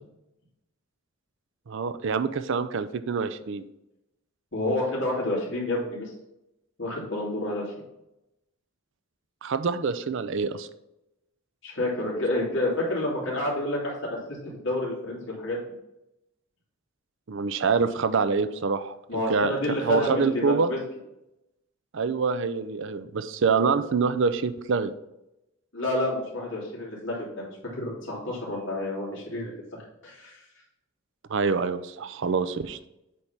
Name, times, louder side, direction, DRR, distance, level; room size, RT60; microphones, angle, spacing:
voice 1, 1.7-3.6 9.4-10.7 17.3-19.0 19.3-19.5 19.9-20.7 21.9-24.9 31.3-32.8, right 5 dB, 60° right, 11 dB, 0.5 m, -26 dB
voice 2, 4.5-6.1 6.8-7.7 11.6-14.4 14.6-15.6 19.1-20.8 25.7-30.4, left 1 dB, 60° left, -5 dB, 2.9 m, -29 dB
8.4 x 3.4 x 5.7 m, 0.89 s
head